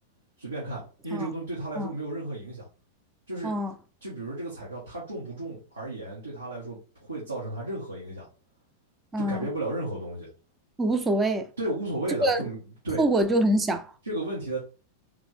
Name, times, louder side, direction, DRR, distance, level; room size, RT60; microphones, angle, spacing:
voice 1, 0.4-2.7 3.3-3.5 4.0-8.2 9.2-10.3 11.6-12.6 12.8-13.0 14.1-14.6, right 2 dB, 80° right, 1.4 m, -33 dB
voice 2, 3.4-3.7 9.1-9.5 10.8-11.5 12.2-12.4 13.0-13.9, right 1 dB, 15° right, 0.7 m, -24 dB
3.6 x 3.4 x 3.3 m
figure-of-eight pair, 90°, 0 cm